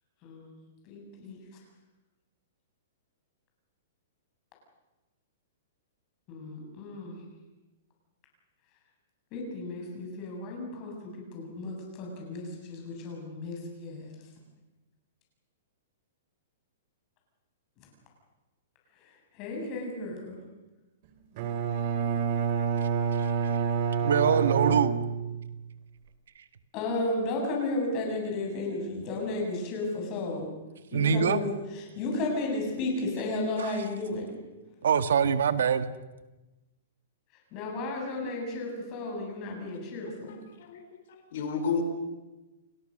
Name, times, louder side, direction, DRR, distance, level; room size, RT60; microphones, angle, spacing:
voice 1, 0.2-0.6 0.9-1.4 6.3-7.2 9.3-14.1 19.3-20.4 24.3-24.4 26.7-30.5 30.9-34.3 37.5-40.4, left 2 dB, 30° left, 0 dB, 7.8 m, -33 dB
Bowed string instrument, 21.4-25.6, right 7 dB, 40° right, 2.8 m, -28 dB
voice 2, 24.0-25.0 30.9-31.4 33.6-33.8 34.8-35.9, right 7 dB, 80° right, 11 dB, 1.6 m, -24 dB
voice 3, 40.3-41.8, left 5 dB, 55° left, 7 dB, 4.1 m, -33 dB
29.5 x 18.5 x 6.7 m, 1.1 s
hypercardioid pair, 165°, 0 cm